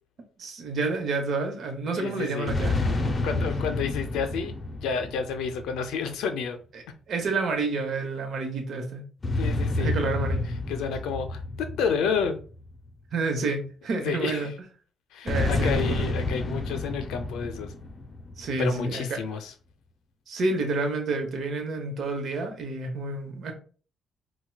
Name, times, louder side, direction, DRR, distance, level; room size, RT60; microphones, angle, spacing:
voice 1, 0.4-2.7 7.1-9.0 9.8-10.4 13.1-14.5 15.2-16.1 18.4-19.2 20.3-23.5, right 3 dB, 60° right, 4 dB, 0.9 m, -29 dB
voice 2, 1.9-2.5 3.2-6.6 9.4-10.0 10.7-12.4 14.0-14.5 15.1-17.7 18.6-19.5, left 6 dB, 90° left, 8 dB, 0.5 m, -30 dB
sound 1, 2.5-6.1 9.2-12.9 15.3-18.7, left 2 dB, 30° left, 0.6 m, -29 dB
4.3 x 2.2 x 2.3 m, 0.39 s
cardioid pair, 90°, 0 cm